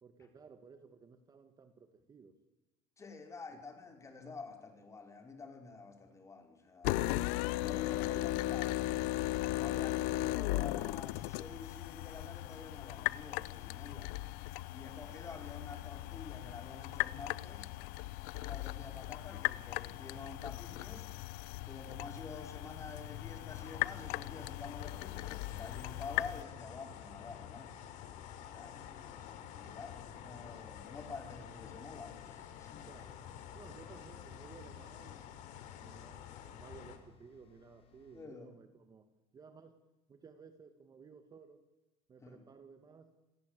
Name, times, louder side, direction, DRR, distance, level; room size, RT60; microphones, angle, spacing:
voice 1, 0.0-2.3 8.1-8.2 32.9-33.3 33.5-35.2 35.8-39.1 39.3-39.8 40.1-41.6 42.1-43.1, right 5 dB, 30° right, 8 dB, 2.1 m, -56 dB
voice 2, 3.0-7.2 7.6-9.1 9.5-14.1 14.7-17.7 18.4-21.1 21.7-27.7 28.5-32.9 38.1-38.5 42.2-42.4, left 4 dB, 20° left, 5 dB, 5.3 m, -49 dB
sound 1, 6.8-26.4, left 18 dB, 85° left, 0.9 m, -37 dB
sound 2, 23.1-38.3, left 6 dB, 45° left, 3.7 m, -65 dB
sound 3, 23.5-37.0, left 10 dB, 70° left, 3.7 m, -50 dB
28.0 x 20.5 x 8.4 m, 1.0 s
cardioid pair, 135°, 13 cm